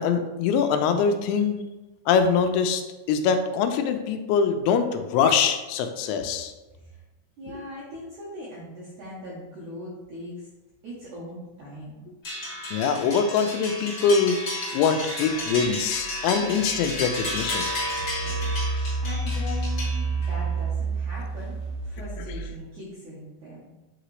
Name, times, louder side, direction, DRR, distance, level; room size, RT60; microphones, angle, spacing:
voice 1, 0.0-1.6 2.1-2.8 3.1-6.5 12.7-14.4 14.7-17.7, left 6 dB, 85° left, 7 dB, 2.8 m, -23 dB
voice 2, 6.7-7.0 7.4-10.5 10.8-12.1 18.2-23.7, equal, 80° right, -6 dB, 1.7 m, -40 dB
sound 1, 12.2-20.4, left 1 dB, 55° left, 1.3 m, -32 dB
Engine, 16.6-22.6, right 3 dB, 55° right, 2.4 m, -30 dB
8.8 x 3.9 x 3.2 m, 1.1 s
omnidirectional pair, 5.2 m